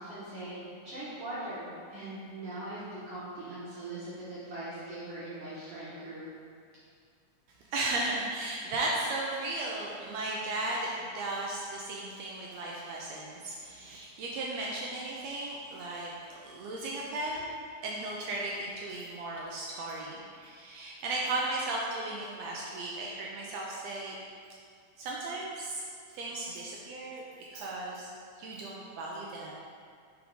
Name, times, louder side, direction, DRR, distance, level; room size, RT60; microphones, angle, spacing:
voice 1, 0.0-6.2, right 1 dB, 55° right, -12 dB, 2.2 m, -41 dB
voice 2, 7.7-16.1 16.4-17.5 17.8-24.2 25.0-25.8 26.1-27.2 27.5-28.1 28.4-29.5, right 2 dB, 80° right, -3 dB, 1.7 m, -35 dB
4.9 x 4.7 x 5.3 m, 2.2 s
omnidirectional pair, 3.3 m